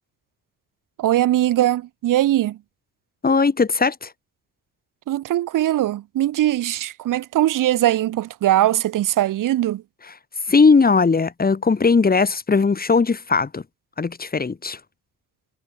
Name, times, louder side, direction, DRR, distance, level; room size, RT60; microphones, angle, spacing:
voice 1, 1.0-2.6 5.1-9.8, right 13 dB, 90° right, 6.0 m, -20 dB
voice 2, 3.2-4.1 10.5-13.6 14.0-14.8, left 4 dB, 30° left, 4.2 m, -18 dB
cardioid pair, 105°, 31 cm